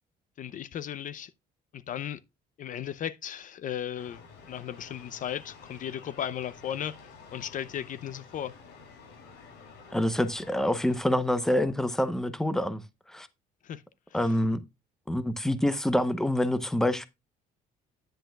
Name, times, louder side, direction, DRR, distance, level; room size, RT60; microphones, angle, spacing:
voice 1, 0.4-1.3 1.7-2.2 2.6-4.2 4.5-8.5 13.6-13.8, left 10 dB, 50° left, 0.6 m, -36 dB
sound 1, 4.0-11.0, left 5 dB, 90° left, 4.9 m, -51 dB
voice 2, 9.9-12.8 13.1-13.3 14.1-14.6 15.1-17.1, left 1 dB, 5° left, 0.8 m, -26 dB
10.5 x 8.8 x 2.3 m
cardioid pair, 110°, 17 cm